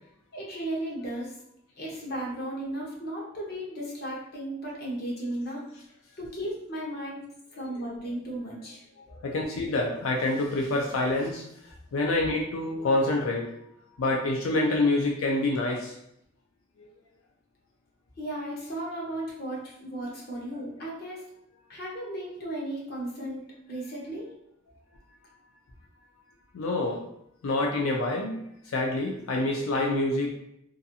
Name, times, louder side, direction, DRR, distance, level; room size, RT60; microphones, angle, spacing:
voice 1, 0.3-1.4 1.8-5.6 6.2-7.2 7.5-8.8 18.2-21.2 21.7-24.3, right 1 dB, 50° left, -3 dB, 0.8 m, -35 dB
voice 2, 9.2-11.4 11.9-13.5 14.0-15.9 16.8-16.9 26.5-27.0 27.4-30.4, left 2 dB, 90° left, -1 dB, 0.4 m, -27 dB
2.5 x 2.3 x 2.7 m, 0.77 s
head